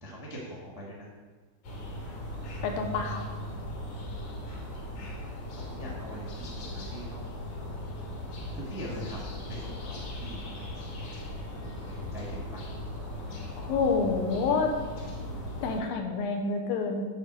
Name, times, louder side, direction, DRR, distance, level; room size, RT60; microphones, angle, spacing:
voice 1, 0.0-1.1 3.8-3.9 5.5-7.2 8.5-11.2 11.9-12.6, equal, 15° right, -4 dB, 0.7 m, -43 dB
sound 1, 1.6-15.8, left 1 dB, 60° left, 2.7 m, -38 dB
voice 2, 2.6-3.2 13.6-14.8 15.6-17.1, left 4 dB, 80° left, 3 dB, 2.6 m, -28 dB
9.5 x 4.0 x 6.5 m, 1.4 s
omnidirectional pair, 4.0 m